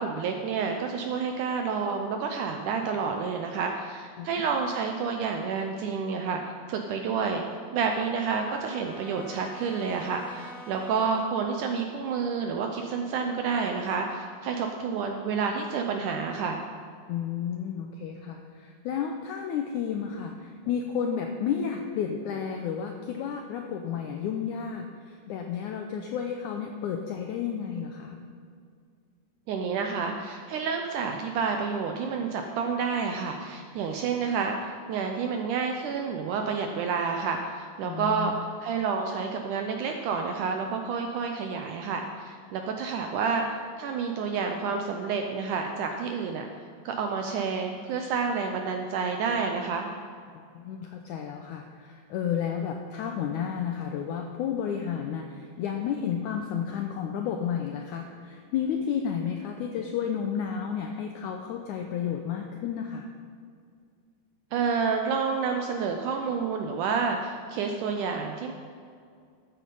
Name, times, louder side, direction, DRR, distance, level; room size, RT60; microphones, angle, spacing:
voice 1, 0.0-6.4 6.7-7.4 7.7-16.6 29.5-38.3 38.6-46.5 46.9-49.9 64.5-68.5, right 5 dB, 80° right, 4 dB, 1.8 m, -29 dB
Brass instrument, 5.9-11.5, equal, ahead, 1.5 m, -48 dB
voice 2, 17.1-28.2 37.8-38.3 50.3-63.1, left 8 dB, 85° left, 4 dB, 1.7 m, -32 dB
13.0 x 8.5 x 5.4 m, 2.2 s
omnidirectional pair, 4.3 m